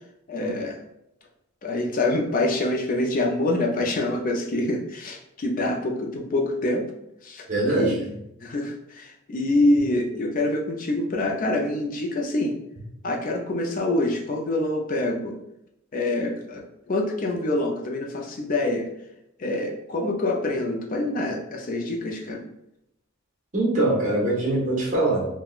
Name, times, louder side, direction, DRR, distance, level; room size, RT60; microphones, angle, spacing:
voice 1, 0.3-0.8 1.6-6.9 7.2-7.4 7.7-8.0 8.4-12.6 13.0-15.4 15.9-18.9 19.4-22.5, left 2 dB, 40° left, 1 dB, 0.5 m, -26 dB
voice 2, 7.5-8.2 23.5-25.3, right 2 dB, 35° right, -5 dB, 0.9 m, -23 dB
3.5 x 2.2 x 2.3 m, 0.83 s
head